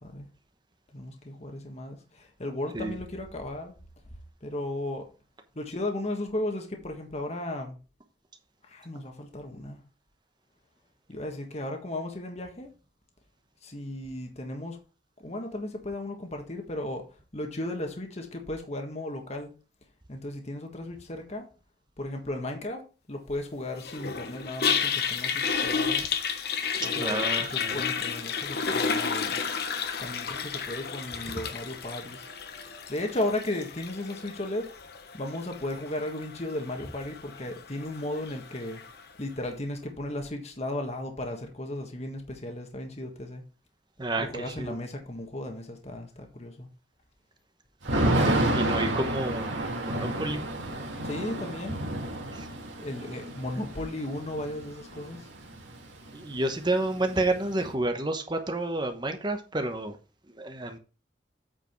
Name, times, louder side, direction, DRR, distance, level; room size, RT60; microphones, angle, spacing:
voice 1, 0.9-3.7 4.4-5.1 5.5-7.8 8.7-9.8 11.1-12.7 13.6-14.8 15.2-17.1 17.3-19.5 20.1-21.5 22.0-26.0 26.8-29.4 30.0-32.3 32.9-34.7 35.1-38.8 39.2-43.4 44.2-46.7 51.0-51.8 52.8-55.3, left 1 dB, 35° left, 1.5 m, -35 dB
Toilet flush, 23.8-39.0, left 6 dB, 55° left, 1.1 m, -32 dB
voice 2, 27.0-27.7 44.0-44.8 47.9-49.5 49.8-50.5 52.3-52.5 56.1-60.0 60.4-60.8, right 2 dB, 25° right, 1.0 m, -30 dB
Thunder / Rain, 47.8-55.7 56.0-56.1 56.4-57.7, right 1 dB, 90° right, 2.1 m, -30 dB
8.7 x 5.0 x 4.6 m
head